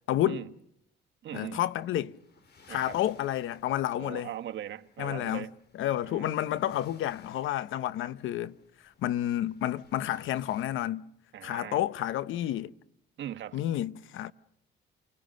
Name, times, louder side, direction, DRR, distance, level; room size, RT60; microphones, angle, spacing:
voice 1, 0.1-0.4 1.3-2.1 2.7-4.3 5.0-5.5 5.7-8.5 8.8-11.1 11.4-12.7 13.5-14.3, left 12 dB, 80° left, 0.9 m, -30 dB
voice 2, 1.2-1.6 2.7-3.0 4.0-5.5 6.0-6.3 11.3-11.8 13.2-13.6, right 11 dB, 70° right, 1.6 m, -40 dB
sound 1, 1.4-10.7, left 4 dB, 55° left, 4.5 m, -60 dB
29.0 x 20.0 x 6.5 m
cardioid pair, 90°, 20 cm